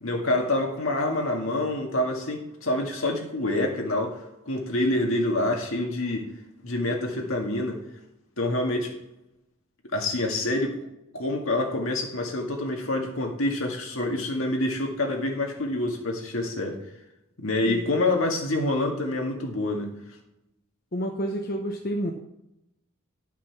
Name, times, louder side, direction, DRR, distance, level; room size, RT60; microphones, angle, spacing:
voice 1, 0.0-4.2 4.5-6.3 6.6-7.8 8.4-8.9 9.9-10.8 11.1-16.8 17.4-19.9, left 2 dB, 70° left, 1 dB, 2.0 m, -27 dB
voice 2, 20.9-22.1, equal, 45° left, 2 dB, 0.9 m, -29 dB
11.5 x 5.9 x 6.0 m, 0.85 s
head